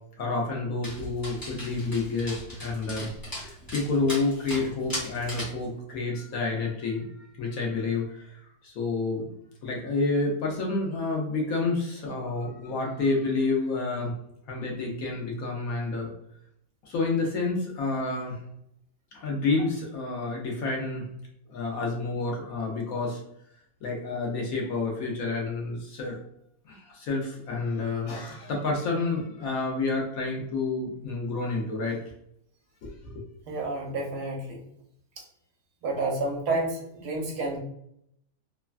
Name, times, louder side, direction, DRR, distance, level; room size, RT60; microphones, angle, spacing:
voice 1, 0.2-3.1 3.4-9.3 9.6-14.1 14.5-16.1 16.8-18.4 19.1-21.1 21.5-23.2 23.8-26.2 26.6-32.0 32.8-33.2, left 3 dB, 70° left, -1 dB, 1.0 m, -29 dB
Dog, 0.8-5.6, left 1 dB, 15° left, 0.8 m, -38 dB
voice 2, 33.5-34.6 35.8-37.6, right 2 dB, 75° right, 0 dB, 1.2 m, -30 dB
3.2 x 2.2 x 2.3 m, 0.73 s
omnidirectional pair, 1.8 m